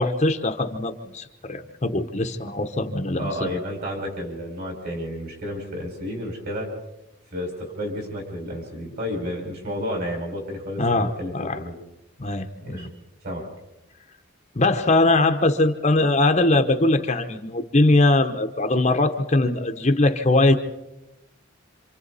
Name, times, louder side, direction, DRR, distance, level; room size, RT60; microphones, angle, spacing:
voice 1, 0.0-3.5 10.8-11.6 12.2-12.9 14.5-20.5, left 2 dB, 30° left, 6 dB, 0.9 m, -21 dB
voice 2, 3.1-6.7 7.3-11.7 12.6-12.9 13.2-13.5, equal, 45° right, 1 dB, 5.6 m, -31 dB
27.5 x 27.0 x 4.1 m, 0.95 s
head